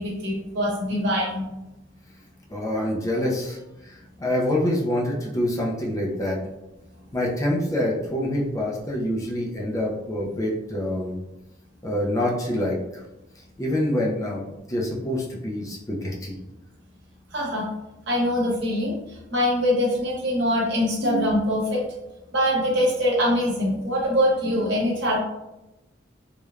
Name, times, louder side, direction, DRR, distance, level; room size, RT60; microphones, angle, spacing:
voice 1, 0.0-1.5 17.3-17.7 18.1-19.0 19.3-21.8 22.3-25.2, equal, 65° right, -4 dB, 1.0 m, -23 dB
voice 2, 2.5-6.4 7.1-11.2 11.8-13.0 13.6-16.4, left 1 dB, 15° left, -3 dB, 0.4 m, -26 dB
3.1 x 2.1 x 2.4 m, 0.96 s
head